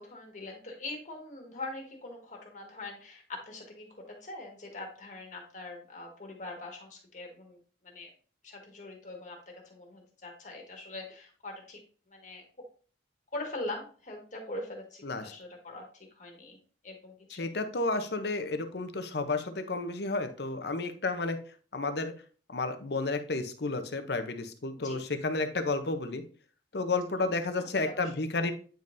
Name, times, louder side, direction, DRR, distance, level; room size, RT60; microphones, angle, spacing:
voice 1, 0.0-7.6 7.8-8.1 8.4-11.8 12.1-12.4 13.3-16.6 16.8-17.5 24.8-25.0 27.6-28.1, left 2 dB, 40° left, 1 dB, 1.6 m, -42 dB
voice 2, 17.4-21.4 21.7-22.1 22.5-26.2 26.7-28.5, left 3 dB, 60° left, 9 dB, 0.7 m, -31 dB
8.9 x 5.3 x 2.6 m, 0.41 s
head